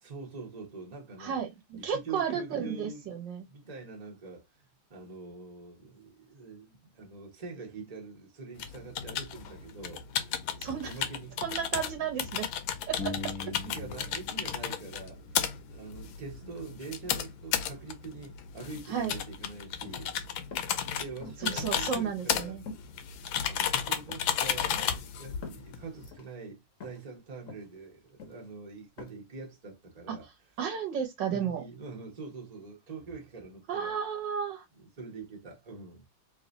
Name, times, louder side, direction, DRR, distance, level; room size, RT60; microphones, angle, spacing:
voice 1, 0.0-1.4 1.7-3.2 3.5-10.5 10.9-11.4 13.2-15.2 15.7-20.1 20.9-22.5 23.4-30.3 31.3-34.0 34.8-36.0, right 4 dB, 25° right, 1.2 m, -44 dB
voice 2, 1.2-3.5 10.6-10.9 11.4-12.5 12.9-13.1 18.9-19.1 21.4-22.6 30.6-31.6 33.7-34.6, right 8 dB, 70° right, 1.5 m, -33 dB
sound 1, 8.6-26.1, left 9 dB, 90° left, 1.5 m, -34 dB
sound 2, 13.0-14.5 14.7-16.5, left 4 dB, 5° left, 0.7 m, -43 dB
sound 3, 19.8-20.1 20.5-20.7 21.2-21.5 21.9-22.4 22.7-22.9 23.4-23.8 24.1-24.3 24.7-25.0 25.4-25.7 26.1-26.3 26.8-27.1 27.5-27.7 28.2-28.5 29.0-29.1, left 4 dB, 50° left, 1.3 m, -45 dB
3.4 x 3.2 x 3.9 m
omnidirectional pair, 2.1 m